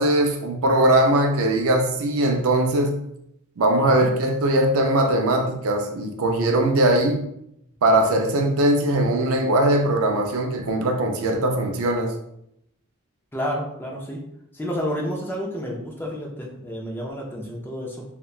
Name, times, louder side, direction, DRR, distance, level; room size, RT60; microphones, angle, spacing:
voice 1, 0.0-3.0 3.6-7.2 7.8-12.1, right 1 dB, 65° right, 4 dB, 0.4 m, -20 dB
voice 2, 13.3-14.2 14.5-18.0, equal, 10° left, -2 dB, 0.4 m, -30 dB
2.9 x 2.2 x 2.3 m, 0.76 s
head